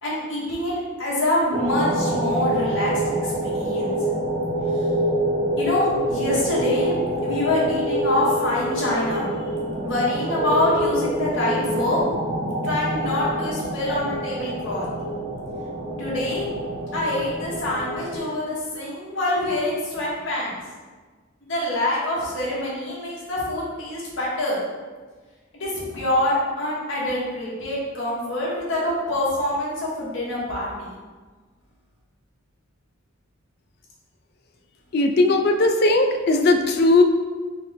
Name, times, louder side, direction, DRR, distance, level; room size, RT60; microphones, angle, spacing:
voice 1, 0.0-2.9 3.2-3.9 5.6-7.0 7.2-9.3 9.8-12.0 12.6-14.8 16.0-16.5 16.9-20.6 21.4-24.6 25.5-30.9, left 1 dB, 70° left, -6 dB, 1.2 m, -25 dB
sound 1, 1.5-18.2, right 1 dB, 30° right, 0.6 m, -26 dB
voice 2, 34.9-37.0, left 2 dB, 50° left, 5 dB, 0.3 m, -18 dB
4.1 x 2.1 x 3.9 m, 1.4 s
head